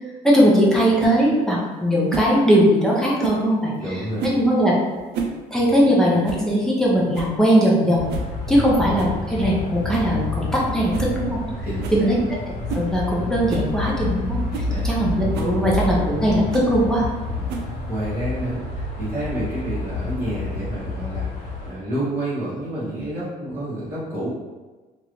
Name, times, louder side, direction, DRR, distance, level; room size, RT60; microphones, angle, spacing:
voice 1, 0.2-3.7 4.2-4.7 5.5-8.1 8.5-11.4 11.9-12.2 12.7-14.4 14.8-17.1, equal, 5° left, -5 dB, 0.7 m, -19 dB
sound 1, 1.0-1.2 2.1-2.4 3.2-3.5 4.2-4.5 5.0-5.4 5.7-5.8 6.2-6.5 6.8-6.9 7.1-7.4 8.1-8.3 9.0-9.2 9.9-10.2 10.5-10.6 10.9-11.1 11.4-11.5 11.8-12.0 12.7-12.9 13.5-13.7 14.2-14.3 14.5-14.7 15.3-15.6 16.5-16.7 17.5-17.9, right 5 dB, 85° right, 0.5 m, -30 dB
voice 2, 3.7-4.3 11.6-12.1 14.6-14.9 17.3-24.3, right 1 dB, 15° right, -13 dB, 1.4 m, -29 dB
sound 2, 7.9-21.7, left 2 dB, 50° left, 1.2 m, -29 dB
3.0 x 2.6 x 3.1 m, 1.3 s
cardioid pair, 110°, 17 cm